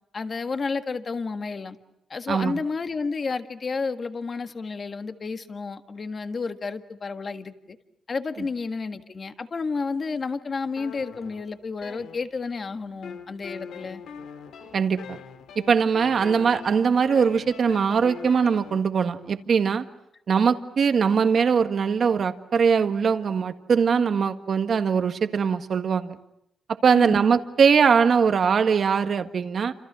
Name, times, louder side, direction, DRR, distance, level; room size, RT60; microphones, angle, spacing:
voice 1, 0.1-1.8 2.1-7.8 8.1-14.0 26.9-27.2, left 4 dB, 35° left, 8 dB, 1.6 m, -31 dB
voice 2, 2.3-2.6 14.7-15.2 15.5-19.8 20.3-26.2 26.8-29.7, right 6 dB, 50° right, 8 dB, 1.7 m, -21 dB
sound 1, 10.8-12.6 13.0-18.8, left 7 dB, 90° left, 2.3 m, -42 dB
29.5 x 27.0 x 6.2 m, 0.81 s
cardioid pair, 125°, 0 cm